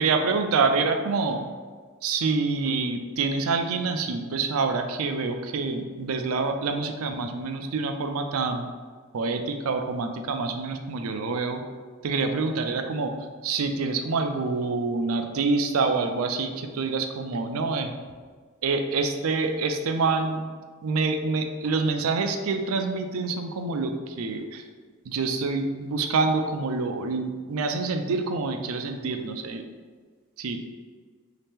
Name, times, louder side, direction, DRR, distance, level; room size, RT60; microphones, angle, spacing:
voice 1, 0.0-1.5 2.0-8.7 9.1-11.6 12.0-13.1 13.4-17.9 18.6-20.4 20.8-24.6 25.1-29.6 30.4-30.6, right 4 dB, 80° right, 6 dB, 0.4 m, -26 dB
3.2 x 2.8 x 3.5 m, 1.5 s
head